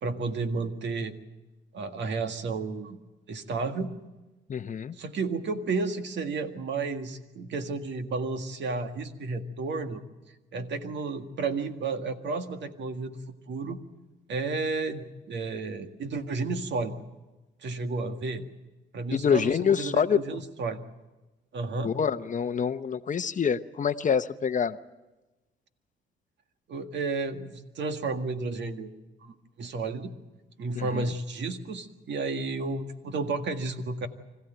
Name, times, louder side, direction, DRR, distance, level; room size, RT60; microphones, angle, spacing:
voice 1, 0.0-1.1 1.7-3.0 3.3-3.9 4.9-10.0 10.5-13.2 13.5-13.8 14.3-17.0 17.6-18.5 18.9-20.8 21.5-21.9 26.7-28.9 29.2-30.1 30.6-34.1, right 3 dB, 65° right, 7 dB, 1.9 m, -32 dB
voice 2, 4.5-5.0 19.1-20.2 21.8-24.8 30.8-31.0, left 7 dB, 40° left, 12 dB, 0.8 m, -26 dB
25.5 x 15.5 x 9.1 m, 1.1 s
cardioid pair, 90°, 20 cm